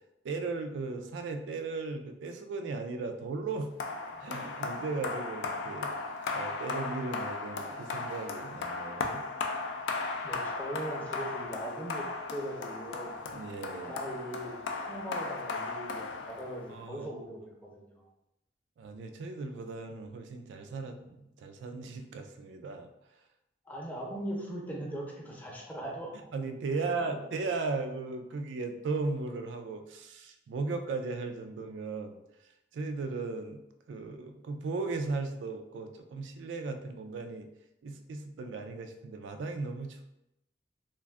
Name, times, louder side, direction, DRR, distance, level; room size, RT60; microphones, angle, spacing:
voice 1, 0.2-3.7 4.2-5.9 6.3-9.2 13.3-13.9 16.7-17.1 18.8-22.9 26.3-32.2 32.7-33.6 33.9-37.5 37.8-40.0, right 3 dB, 80° right, 6 dB, 0.3 m, -36 dB
sound 1, 3.8-16.8, left 3 dB, 80° left, 0.4 m, -36 dB
voice 2, 10.2-13.2 13.7-17.9 23.7-26.1, right 1 dB, 10° left, -2 dB, 0.5 m, -40 dB
2.4 x 2.3 x 3.4 m, 0.86 s
head